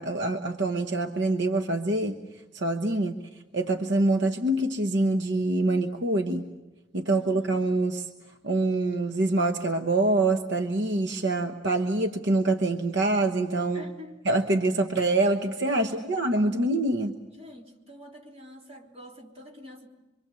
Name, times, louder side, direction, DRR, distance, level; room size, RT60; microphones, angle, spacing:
voice 1, 0.0-2.2 2.5-3.1 3.5-6.5 6.9-8.1 8.4-13.8 14.2-17.1, right 2 dB, 60° right, 5 dB, 1.1 m, -25 dB
voice 2, 7.2-7.7 13.7-14.3 15.8-16.2 17.3-19.9, left 1 dB, 30° right, -1 dB, 3.6 m, -47 dB
27.0 x 24.5 x 7.1 m, 1.1 s
head